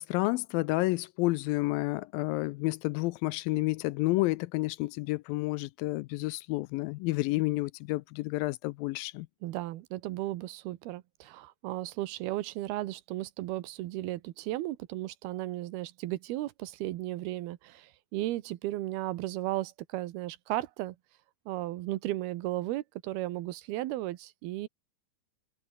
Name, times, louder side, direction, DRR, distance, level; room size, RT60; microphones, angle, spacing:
voice 1, 0.0-9.3, left 21 dB, 80° left, 2.2 m, -30 dB
voice 2, 9.4-21.0 21.5-24.7, right 16 dB, 90° right, 3.0 m, -35 dB
omnidirectional pair, 4.4 m